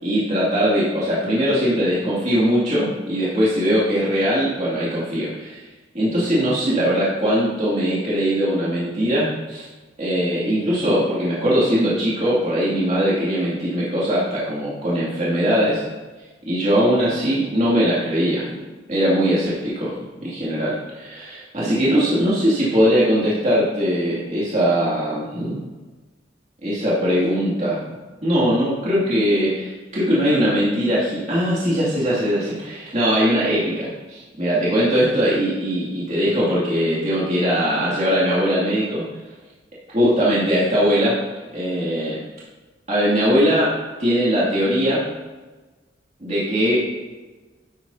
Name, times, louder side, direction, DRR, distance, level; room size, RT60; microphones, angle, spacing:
voice 1, 0.0-5.6 5.9-9.7 10.0-15.8 16.5-18.5 18.9-19.9 20.2-25.6 26.6-27.8 28.2-39.0 39.9-41.2 41.5-42.2 42.9-43.7 44.0-45.0 46.2-46.8, equal, 35° right, -8 dB, 2.3 m, -20 dB
11.5 x 8.5 x 2.7 m, 1.3 s
head